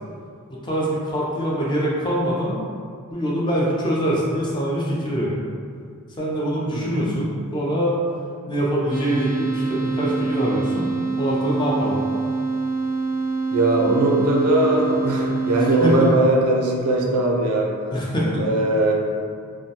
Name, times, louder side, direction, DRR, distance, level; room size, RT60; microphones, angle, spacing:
voice 1, 0.5-2.6 3.1-5.4 6.2-7.9 8.5-10.9 11.2-12.0 15.8-16.1 17.9-18.4, equal, 20° left, -5 dB, 0.4 m, -24 dB
voice 2, 6.7-7.2 13.5-17.7 18.4-18.9, right 2 dB, 80° right, -1 dB, 0.4 m, -20 dB
sound 1, 8.9-16.1, right 3 dB, 70° left, 0.9 m, -25 dB
2.2 x 2.2 x 2.7 m, 2.2 s
head